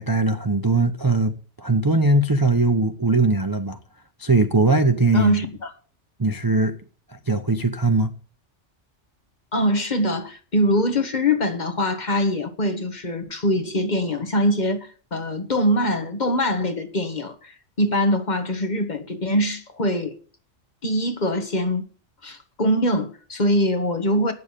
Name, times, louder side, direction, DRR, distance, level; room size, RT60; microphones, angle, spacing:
voice 1, 0.0-3.8 4.2-5.4 6.2-6.7 7.3-8.1, right 2 dB, 25° right, 0.5 m, -20 dB
voice 2, 5.1-5.7 9.5-20.1 20.8-21.8 22.2-24.3, equal, 40° left, 1.3 m, -23 dB
8.7 x 6.9 x 8.3 m
omnidirectional pair, 1.2 m